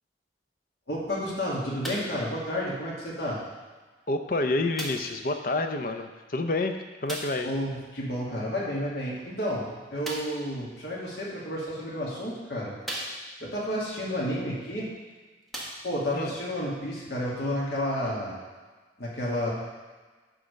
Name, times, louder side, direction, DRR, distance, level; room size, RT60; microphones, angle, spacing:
voice 1, 0.9-3.4 7.4-12.7 13.4-14.9 15.8-18.4 19.0-19.5, equal, 70° left, -5 dB, 1.9 m, -31 dB
sound 1, 1.8-2.2 3.1-3.2 4.8-5.2 7.1-7.5 10.0-10.4 11.4-11.5 12.1-12.2 12.8-13.5 14.8-14.9 15.4-16.2 17.0-17.1, right 1 dB, ahead, 1.3 m, -37 dB
voice 2, 4.1-7.5 16.1-16.3, left 2 dB, 50° left, 6 dB, 0.7 m, -28 dB
9.7 x 3.8 x 6.4 m, 1.4 s
head